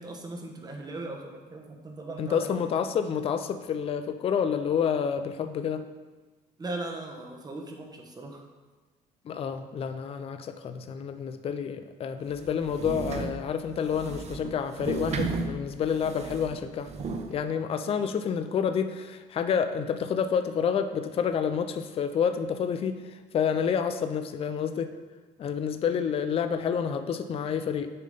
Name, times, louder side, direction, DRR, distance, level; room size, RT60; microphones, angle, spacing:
voice 1, 0.0-2.5 6.6-8.4 17.8-18.1, right 2 dB, 25° right, 2 dB, 1.0 m, -38 dB
voice 2, 2.2-5.8 9.2-16.9 17.3-24.9 25.4-27.9, left 7 dB, 35° left, 9 dB, 0.4 m, -29 dB
sound 1, 12.3-17.3, right 4 dB, 40° right, 0.6 m, -35 dB
6.7 x 3.7 x 5.0 m, 1.3 s
cardioid pair, 110°, 17 cm